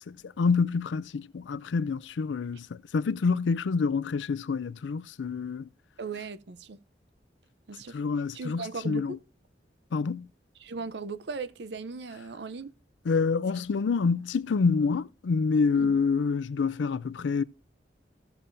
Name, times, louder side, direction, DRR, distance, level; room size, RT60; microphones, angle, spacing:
voice 1, 0.1-5.7 7.9-9.2 9.9-10.3 13.0-17.4, left 4 dB, 90° left, 0.4 m, -27 dB
voice 2, 6.0-6.8 7.7-8.0 8.3-9.2 10.6-12.7 15.8-16.0, right 4 dB, 70° right, 0.6 m, -37 dB
15.5 x 7.0 x 2.6 m
head